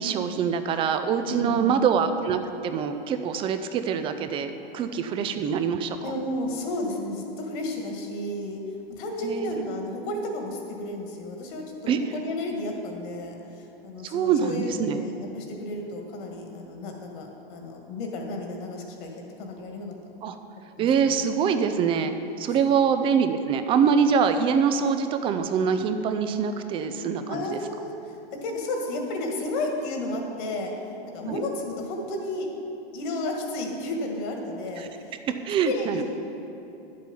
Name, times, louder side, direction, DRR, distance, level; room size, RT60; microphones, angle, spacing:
voice 1, 0.0-6.0 9.2-9.6 11.9-12.0 14.0-15.0 20.2-20.4 20.8-27.6 31.3-31.4 35.4-36.0, right 6 dB, 15° right, 9 dB, 0.4 m, -24 dB
voice 2, 1.3-1.8 6.0-20.2 20.8-21.2 22.5-22.6 27.3-30.7 31.1-32.5 32.9-35.2 35.6-36.0, left 1 dB, 50° left, 2 dB, 1.9 m, -33 dB
10.0 x 7.6 x 5.5 m, 2.9 s
hypercardioid pair, 125°, 31 cm